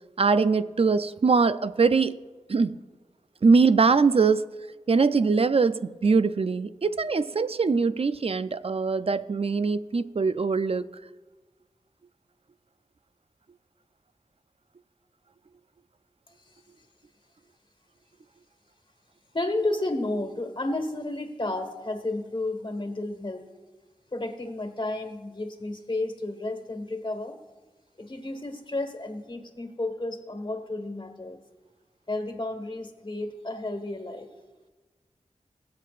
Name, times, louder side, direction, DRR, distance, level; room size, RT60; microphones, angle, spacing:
voice 1, 0.2-2.2 2.5-2.8 3.4-4.5 4.9-10.9, right 4 dB, 50° right, 0.5 m, -22 dB
voice 2, 19.3-23.4 24.1-27.4 28.0-31.4 32.1-34.3, left 2 dB, 40° left, 1.6 m, -32 dB
21.0 x 7.5 x 2.5 m
cardioid pair, 45°, 13 cm